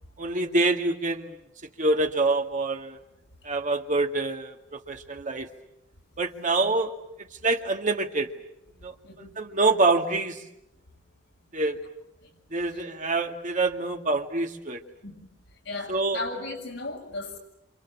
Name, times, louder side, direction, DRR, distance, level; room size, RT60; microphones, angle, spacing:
voice 1, 0.2-1.4 1.8-3.0 3.4-5.5 6.2-6.9 7.2-8.3 8.8-10.4 11.5-11.8 12.5-14.8 15.9-16.2, right 2 dB, 40° right, 4 dB, 2.2 m, -26 dB
voice 2, 15.6-17.4, left 2 dB, 70° left, 1 dB, 6.8 m, -36 dB
28.0 x 27.5 x 7.5 m, 0.83 s
head